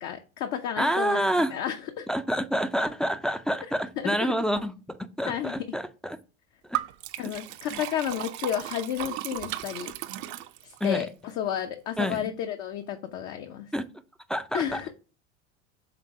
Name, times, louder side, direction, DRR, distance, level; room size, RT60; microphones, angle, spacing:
voice 1, 0.0-2.1 4.0-4.3 5.3-5.8 7.2-9.9 10.6-13.7 14.5-14.9, left 10 dB, 60° left, 0.8 m, -32 dB
voice 2, 0.8-1.5 2.1-6.2 6.7-6.8 7.7-7.8 10.8-11.0 12.0-12.2 13.7-13.9 14.3-14.9, equal, ahead, 0.4 m, -28 dB
Liquid, 6.7-10.9, right 15 dB, 65° right, 0.7 m, -35 dB
6.0 x 3.6 x 4.7 m
hypercardioid pair, 95°, 34 cm